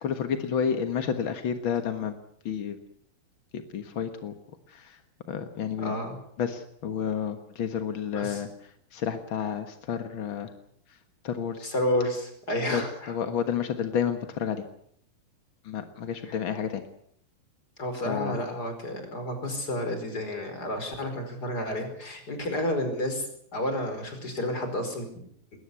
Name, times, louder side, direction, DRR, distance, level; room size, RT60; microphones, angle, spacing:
voice 1, 0.0-2.1 2.4-2.8 3.7-4.3 4.7-5.0 5.3-6.0 6.4-10.5 10.9-11.0 11.2-11.7 12.7-12.8 13.1-14.6 15.6-16.8 18.1-18.4, left 7 dB, 60° left, 8 dB, 1.3 m, -30 dB
voice 2, 5.8-6.2 8.1-8.4 11.6-13.1 16.2-16.4 17.8-23.2 23.5-25.1, left 1 dB, 25° left, 6 dB, 5.1 m, -30 dB
21.0 x 19.0 x 8.4 m, 0.66 s
omnidirectional pair, 4.4 m